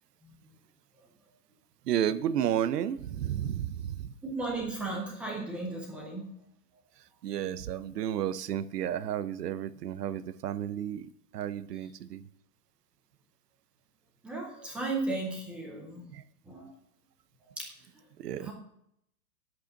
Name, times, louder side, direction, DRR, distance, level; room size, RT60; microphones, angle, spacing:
voice 1, 1.8-4.1 7.2-12.2 16.1-16.2 18.2-18.5, right 10 dB, 90° right, 15 dB, 0.9 m, -32 dB
voice 2, 4.2-6.3 14.2-16.0 16.5-16.7 17.6-17.7 18.4-18.5, right 2 dB, 5° right, -2 dB, 0.4 m, -35 dB
9.4 x 7.9 x 5.9 m, 0.74 s
hypercardioid pair, 160°, 46 cm